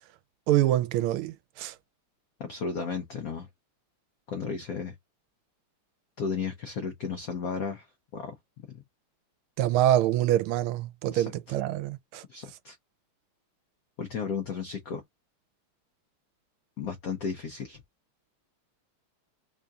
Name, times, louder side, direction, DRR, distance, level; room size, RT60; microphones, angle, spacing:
voice 1, 0.5-1.7 9.6-12.2, right 13 dB, 90° right, 1.5 m, -25 dB
voice 2, 2.4-3.5 4.3-4.9 6.2-7.9 8.1-8.3 11.1-11.3 12.3-12.8 14.0-15.0 16.8-17.8, left 6 dB, 80° left, 0.8 m, -34 dB
3.7 x 2.3 x 3.8 m
omnidirectional pair, 2.3 m